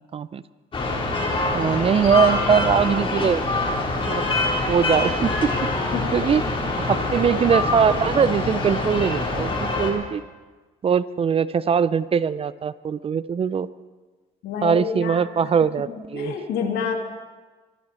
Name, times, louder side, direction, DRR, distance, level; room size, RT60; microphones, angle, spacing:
voice 1, 0.1-0.4 1.5-3.4 4.0-4.2 4.7-5.5 6.1-6.4 6.8-10.2 10.8-13.7 14.6-16.3, right 7 dB, 35° right, 16 dB, 0.6 m, -21 dB
sound 1, 0.7-9.9, left 2 dB, 30° left, 3.8 m, -24 dB
voice 2, 14.4-15.2 15.9-16.9, left 6 dB, 75° left, 3 dB, 2.5 m, -28 dB
25.0 x 12.5 x 4.4 m, 1.3 s
cardioid pair, 110°, 17 cm